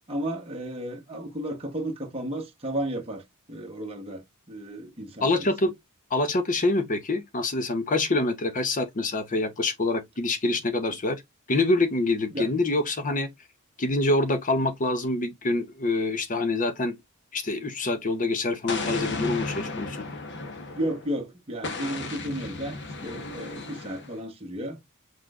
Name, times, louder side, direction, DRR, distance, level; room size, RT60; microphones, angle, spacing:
voice 1, 0.1-3.2 3.5-5.5 12.3-12.5 20.7-24.8, right 1 dB, 25° right, 1.1 m, -33 dB
voice 2, 5.2-5.7 6.1-11.2 11.5-13.3 13.8-17.0 17.3-20.1, left 2 dB, 35° left, 0.7 m, -26 dB
Explosion, 18.7-21.1 21.6-24.2, left 3 dB, 55° left, 1.1 m, -34 dB
5.9 x 3.2 x 2.3 m
head